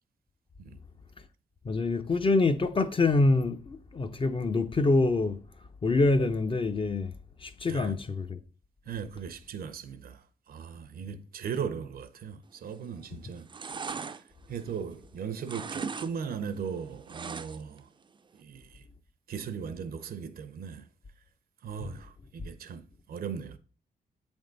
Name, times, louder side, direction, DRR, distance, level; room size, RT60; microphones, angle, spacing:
voice 1, 1.6-5.4 5.8-7.1 7.4-8.4, left 3 dB, 35° left, 0.6 m, -25 dB
voice 2, 8.9-13.5 14.0-17.9 18.3-18.8 19.3-20.9 21.6-23.6, right 7 dB, 75° right, 0.6 m, -38 dB
sound 1, 12.7-13.0 13.3-15.1 15.4-16.1 16.4-17.8 18.1-18.2, right 5 dB, 30° right, 0.4 m, -39 dB
8.0 x 3.6 x 3.9 m
cardioid pair, 80°, 16 cm